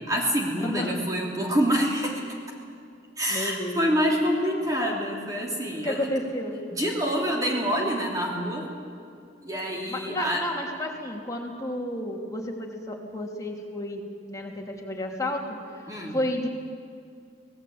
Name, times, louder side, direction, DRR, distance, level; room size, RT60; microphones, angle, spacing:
voice 1, 0.1-2.2 3.2-6.1 6.7-8.7 9.4-10.4 15.9-16.2, equal, 20° right, -1 dB, 2.9 m, -26 dB
voice 2, 0.6-1.0 3.3-4.2 5.8-6.6 9.9-14.0 14.3-16.5, left 1 dB, 15° left, 0 dB, 2.9 m, -32 dB
25.0 x 19.0 x 8.7 m, 2.3 s
head